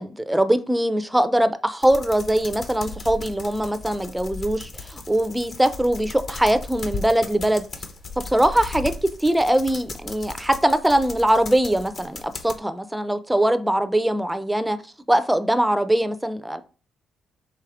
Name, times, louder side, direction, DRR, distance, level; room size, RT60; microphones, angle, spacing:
voice 1, 0.0-7.7 8.3-14.8 15.1-16.6, right 1 dB, 5° right, 0.5 m, -22 dB
sound 1, 1.8-12.6, left 3 dB, 50° left, 0.8 m, -37 dB
4.8 x 3.1 x 3.5 m
cardioid pair, 90°, 0 cm